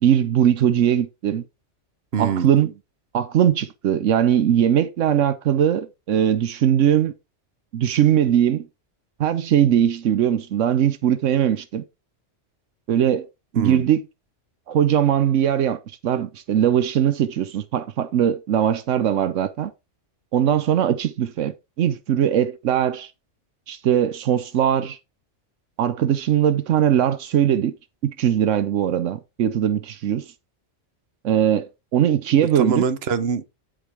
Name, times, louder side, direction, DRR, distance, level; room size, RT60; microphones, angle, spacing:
voice 1, 0.0-1.4 2.2-2.7 3.1-7.1 7.7-8.7 9.2-11.8 12.9-13.3 13.5-14.0 14.7-19.7 20.3-23.1 23.7-25.0 25.8-27.7 28.0-30.3 31.2-32.8, right 10 dB, 80° right, 1.1 m, -20 dB
voice 2, 2.1-2.5 13.5-13.9 32.4-33.4, right 6 dB, 60° right, 1.2 m, -24 dB
13.0 x 5.0 x 3.5 m
omnidirectional pair, 1.3 m